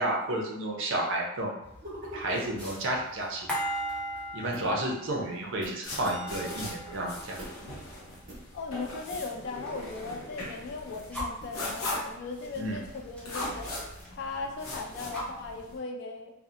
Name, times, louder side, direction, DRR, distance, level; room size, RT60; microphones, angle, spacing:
voice 1, 0.0-1.5 2.1-3.5 4.3-7.4 12.6-12.8, right 1 dB, 60° right, -1 dB, 0.5 m, -31 dB
sound 1, 1.6-10.1 10.4-11.5 12.0-14.1 14.4-14.5 14.8-15.7, equal, 5° left, 0.6 m, -40 dB
sound 2, 1.8-2.6 4.5-4.8 5.6-5.8 6.5-6.6 7.4-7.7 8.3-8.4 9.1-9.4 10.4-10.7 11.4-11.6, equal, 40° right, 0.9 m, -43 dB
sound 3, 5.8-15.8, left 1 dB, 85° left, 0.7 m, -40 dB
voice 2, 8.5-13.7 14.1-16.3, left 4 dB, 55° left, 4 dB, 0.3 m, -38 dB
2.7 x 2.0 x 2.4 m, 0.88 s
head